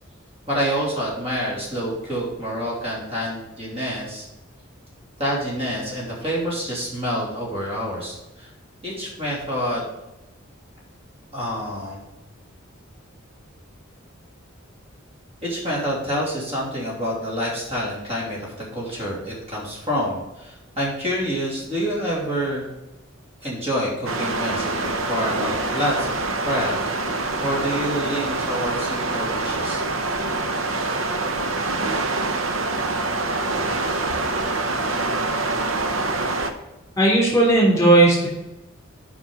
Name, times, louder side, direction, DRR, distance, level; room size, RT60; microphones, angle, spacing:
voice 1, 0.5-4.2 5.2-8.5 8.8-9.9 11.3-12.1 15.4-22.7 23.4-26.8 27.4-29.8, equal, 30° right, -5 dB, 2.9 m, -27 dB
sound 1, 24.1-36.5, right 2 dB, 75° right, 0.9 m, -25 dB
voice 2, 37.0-38.3, right 2 dB, 15° left, -3 dB, 3.1 m, -16 dB
7.3 x 5.5 x 6.9 m, 0.96 s
head